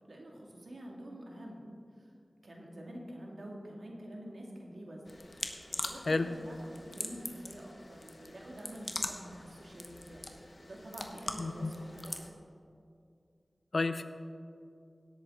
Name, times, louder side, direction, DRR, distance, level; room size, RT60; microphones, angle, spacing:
voice 1, 0.1-2.1 2.4-5.2 5.7-10.2 10.6-12.2, right 1 dB, 80° right, -1 dB, 1.9 m, -47 dB
sound 1, 5.1-12.3, left 2 dB, 55° left, 0.9 m, -42 dB
voice 2, 11.4-11.7 13.7-14.0, left 3 dB, 70° left, 10 dB, 0.6 m, -30 dB
17.0 x 8.3 x 3.7 m, 2.4 s
wide cardioid pair, 55°, 0 cm